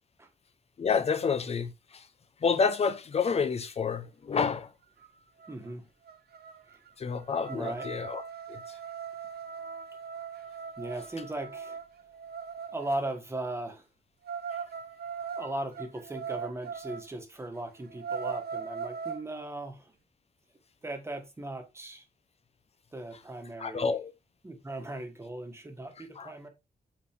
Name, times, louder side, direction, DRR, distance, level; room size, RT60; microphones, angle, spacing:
voice 1, 0.8-2.1 2.4-4.7 7.0-8.2 8.5-8.8 23.6-24.1 26.2-26.3, left 5 dB, 40° left, 0.7 m, -29 dB
sound 1, 5.0-5.1 5.4-5.7 6.1-13.0 14.2-17.1 17.5-17.6 17.9-19.3, right 6 dB, 85° right, 0.9 m, -39 dB
voice 2, 5.5-5.9 7.5-7.9 10.8-11.8 12.7-13.8 15.4-19.9 20.8-22.0 22.9-23.9 24.4-26.5, right 2 dB, 15° right, 1.4 m, -38 dB
8.7 x 3.9 x 3.6 m
wide cardioid pair, 175°, 16 cm